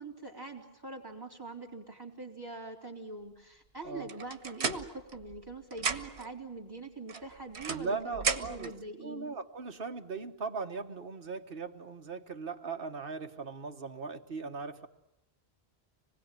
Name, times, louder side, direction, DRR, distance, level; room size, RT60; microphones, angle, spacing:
voice 1, 0.0-9.3, right 2 dB, 20° right, 0 dB, 3.8 m, -43 dB
sound 1, 4.1-5.5 5.7-6.3 7.1-8.7, right 4 dB, 85° right, 1.6 m, -35 dB
voice 2, 7.7-8.7 9.0-14.9, right 4 dB, 60° right, 5 dB, 1.7 m, -39 dB
26.0 x 20.5 x 9.2 m, 0.88 s
omnidirectional pair, 1.1 m